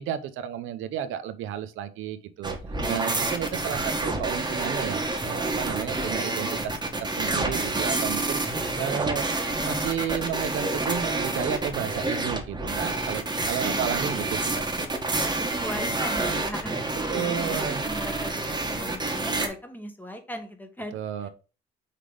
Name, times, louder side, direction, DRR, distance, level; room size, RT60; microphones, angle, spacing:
voice 1, 0.0-2.6 2.9-8.4 8.8-9.3 9.6-14.7 17.1-17.8 20.9-21.3, right 9 dB, 85° right, 11 dB, 0.7 m, -32 dB
sound 1, 2.4-19.5, right 2 dB, 20° right, 1.4 m, -28 dB
voice 2, 15.3-21.3, equal, 10° left, 6 dB, 1.4 m, -39 dB
5.8 x 3.4 x 4.9 m, 0.34 s
cardioid pair, 90°, 20 cm